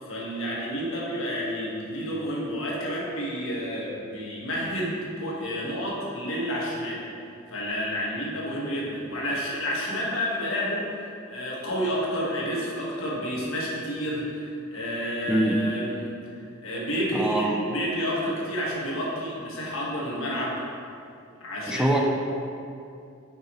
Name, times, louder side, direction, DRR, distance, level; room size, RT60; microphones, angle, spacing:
voice 1, 0.0-7.0 7.5-11.0 11.3-16.1 16.6-20.6 21.4-22.0, equal, 80° left, -5 dB, 1.6 m, -30 dB
voice 2, 17.1-17.6 21.7-22.0, right 1 dB, 5° right, 0 dB, 0.6 m, -23 dB
8.4 x 5.4 x 3.1 m, 2.6 s
head